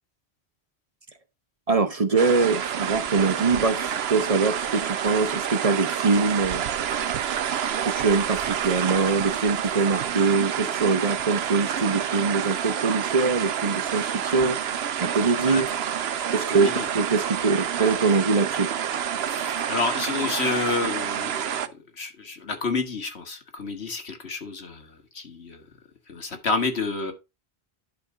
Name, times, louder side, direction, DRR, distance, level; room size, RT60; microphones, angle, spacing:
voice 1, 1.7-6.6 7.8-14.6 15.0-15.7 16.3-16.7 16.9-18.7, right 4 dB, 35° right, 0.9 m, -23 dB
sound 1, 2.2-21.7, right 9 dB, 75° right, 1.0 m, -28 dB
voice 2, 16.5-16.9 19.3-21.7 22.0-24.9 25.1-25.6 26.1-27.1, left 4 dB, 80° left, 2.0 m, -29 dB
11.5 x 3.9 x 4.9 m
omnidirectional pair, 1.1 m